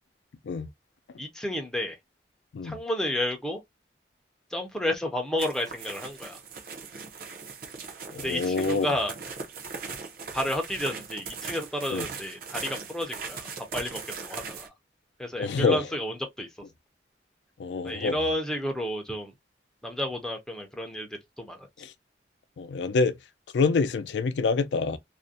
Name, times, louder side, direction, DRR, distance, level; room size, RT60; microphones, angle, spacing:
voice 1, 1.2-2.0 2.6-3.6 4.5-6.4 8.2-9.1 10.3-14.7 15.2-16.5 17.8-19.3 19.8-21.7, left 1 dB, 5° left, 0.4 m, -31 dB
sound 1, 5.4-14.7, right 5 dB, 55° right, 0.5 m, -39 dB
voice 2, 8.1-8.9 11.9-12.1 15.4-15.8 17.6-18.3 21.8-21.9 22.6-23.2 23.5-25.0, left 4 dB, 80° left, 0.4 m, -26 dB
2.4 x 2.0 x 2.5 m
head